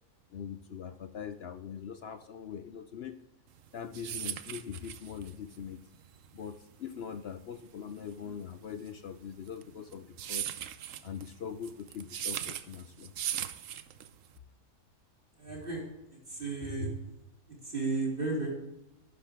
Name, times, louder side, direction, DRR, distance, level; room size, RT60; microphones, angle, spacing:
voice 1, 0.3-3.2 3.7-5.8 6.3-10.5 11.0-13.1, left 7 dB, 65° left, 11 dB, 0.6 m, -42 dB
sound 1, 3.6-14.4, right 10 dB, 65° right, 1.0 m, -39 dB
voice 2, 15.4-15.8 16.3-16.9 17.6-18.5, right 3 dB, 35° right, -4 dB, 3.6 m, -33 dB
12.0 x 10.5 x 3.5 m, 0.97 s
omnidirectional pair, 1.6 m